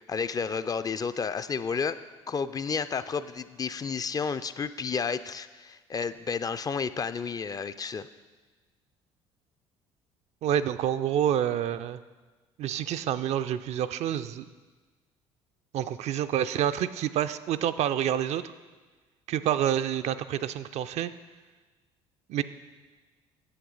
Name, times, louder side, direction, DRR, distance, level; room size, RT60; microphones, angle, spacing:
voice 1, 0.0-2.0 2.3-8.1, left 5 dB, 25° left, 12 dB, 0.3 m, -31 dB
voice 2, 10.4-12.0 12.6-14.4 15.7-18.4 19.3-21.1 22.3-22.4, right 10 dB, 50° right, 12 dB, 0.4 m, -28 dB
7.9 x 7.7 x 3.9 m, 1.3 s
hypercardioid pair, 60°, 14 cm